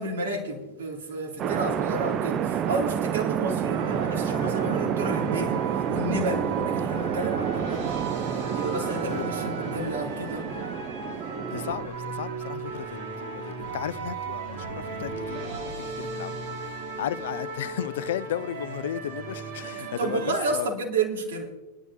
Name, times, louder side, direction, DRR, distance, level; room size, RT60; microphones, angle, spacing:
voice 1, 0.0-7.8 8.5-10.4 19.8-21.5, right 2 dB, 65° right, 2.4 m, -31 dB
sound 1, 1.4-11.9, right 9 dB, 30° right, 0.6 m, -29 dB
sound 2, 3.7-20.6, right 4 dB, 50° right, 1.9 m, -35 dB
voice 2, 11.1-20.7, left 12 dB, 60° left, 0.4 m, -35 dB
24.0 x 11.0 x 2.7 m
figure-of-eight pair, 90°, 0 cm